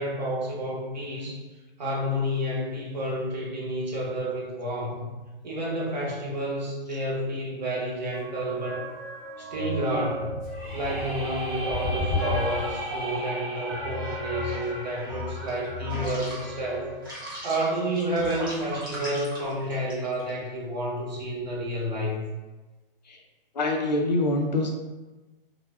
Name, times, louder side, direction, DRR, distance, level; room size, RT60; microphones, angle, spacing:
voice 1, 0.0-1.4 1.8-5.0 5.4-8.8 9.4-10.3 10.7-16.9 17.4-22.2, equal, 45° right, -4 dB, 0.8 m, -30 dB
sound 1, 8.1-13.1 13.6-20.3, left 1 dB, 25° right, 0.4 m, -34 dB
sound 2, 10.4-16.3, right 1 dB, ahead, 0.7 m, -36 dB
voice 2, 23.5-24.7, left 2 dB, 50° left, 0 dB, 0.4 m, -25 dB
2.2 x 2.1 x 3.3 m, 1.2 s
hypercardioid pair, 180°, 29 cm